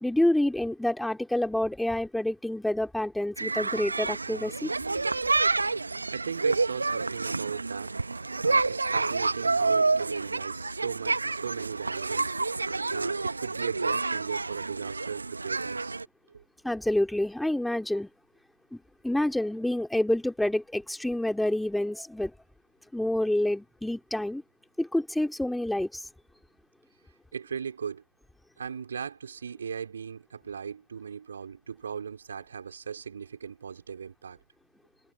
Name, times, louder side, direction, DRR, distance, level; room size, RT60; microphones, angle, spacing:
voice 1, 0.0-4.7 16.6-18.1 18.7-18.8 19.0-22.3 22.9-24.4 24.8-26.1, left 1 dB, ahead, 2.5 m, -28 dB
sound 1, 3.4-16.1, right 3 dB, 80° right, 1.2 m, -29 dB
voice 2, 6.1-7.9 8.4-16.0 16.3-16.4 27.3-28.0 28.6-34.4, right 6 dB, 65° right, 3.6 m, -37 dB
figure-of-eight pair, 130°, 0 cm